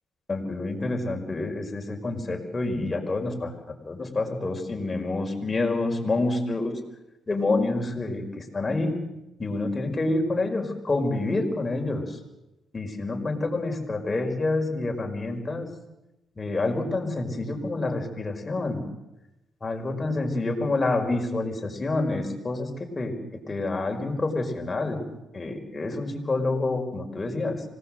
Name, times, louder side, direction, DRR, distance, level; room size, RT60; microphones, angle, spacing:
voice 1, 0.3-3.5 3.8-6.7 7.3-9.0 9.4-12.2 12.7-15.7 16.4-18.9 19.6-25.1 25.3-27.6, left 2 dB, 25° left, 2 dB, 5.3 m, -28 dB
25.5 x 19.0 x 7.8 m, 0.96 s
cardioid pair, 90°, 0 cm